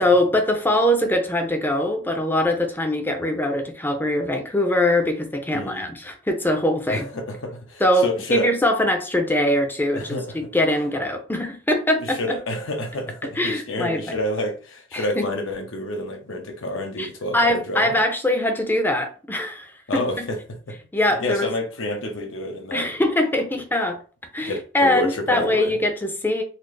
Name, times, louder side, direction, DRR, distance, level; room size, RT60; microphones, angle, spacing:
voice 1, 0.0-7.1 7.8-12.2 13.4-14.2 14.9-15.2 17.0-20.3 20.9-21.5 22.7-24.0 24.3-26.4, left 1 dB, 10° left, 0.5 m, -22 dB
voice 2, 5.5-5.9 6.9-8.5 9.9-10.4 12.0-17.9 19.9-20.4 20.7-20.8 21.1-22.9 24.4-25.7, left 1 dB, 80° left, 0.9 m, -29 dB
4.1 x 2.0 x 3.2 m
head